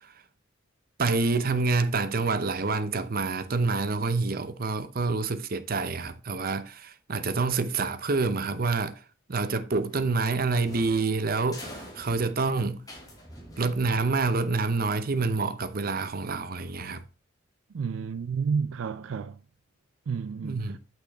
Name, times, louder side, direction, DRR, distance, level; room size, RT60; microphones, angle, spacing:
voice 1, 1.0-8.9 9.3-12.8 13.6-17.0 20.4-20.8, right 3 dB, 45° right, 0.7 m, -27 dB
sound 1, 9.9-14.3, equal, 20° left, 2.7 m, -46 dB
voice 2, 17.7-19.4 20.1-20.8, right 5 dB, 80° right, 0.4 m, -31 dB
8.4 x 6.0 x 3.5 m
head